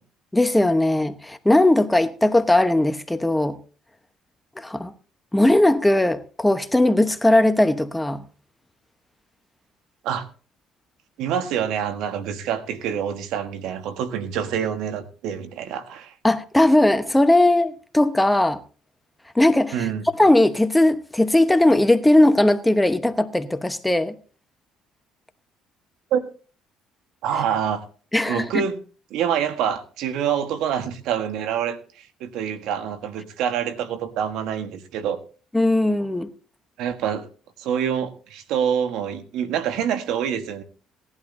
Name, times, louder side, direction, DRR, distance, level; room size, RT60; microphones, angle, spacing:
voice 1, 0.3-3.6 4.6-4.9 5.3-8.2 16.2-18.6 19.3-19.9 20.2-24.1 28.1-28.6 35.5-36.3, left 1 dB, 10° left, 1.0 m, -18 dB
voice 2, 11.2-16.2 19.7-20.1 26.1-26.2 27.2-27.8 28.3-28.8 29.1-35.2 36.8-37.3 37.6-40.6, right 8 dB, 75° right, 1.3 m, -26 dB
18.0 x 11.0 x 2.7 m
supercardioid pair, 80°, 0 cm